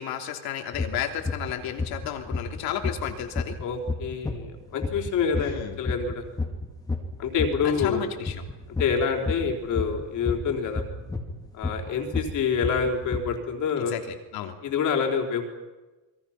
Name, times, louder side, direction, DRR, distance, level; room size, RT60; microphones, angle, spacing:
voice 1, 0.0-3.6 5.4-5.8 7.6-8.4 13.9-14.6, left 10 dB, 60° left, 4 dB, 3.1 m, -33 dB
sound 1, 0.7-0.9 1.3-1.5 1.8-8.0 8.3-13.2, left 3 dB, 10° left, 2.2 m, -29 dB
voice 2, 3.6-6.2 7.2-8.1 8.8-10.8 11.5-14.0 14.6-15.4, left 6 dB, 45° left, 2 dB, 3.9 m, -27 dB
28.5 x 22.0 x 5.9 m, 1.1 s
cardioid pair, 180°, 41 cm